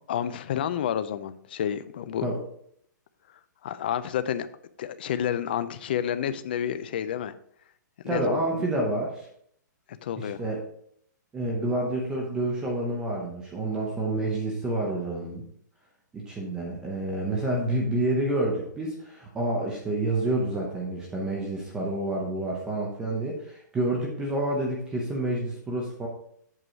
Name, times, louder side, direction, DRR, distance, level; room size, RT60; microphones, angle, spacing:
voice 1, 0.1-2.3 3.6-4.5 4.8-7.3 8.0-8.6 9.9-10.4, left 9 dB, 30° left, 13 dB, 0.4 m, -30 dB
voice 2, 8.1-9.3 10.2-10.6 11.3-15.4 16.1-26.1, right 1 dB, 5° right, -2 dB, 0.7 m, -28 dB
7.6 x 4.7 x 4.8 m, 0.65 s
hypercardioid pair, 175°, 10 cm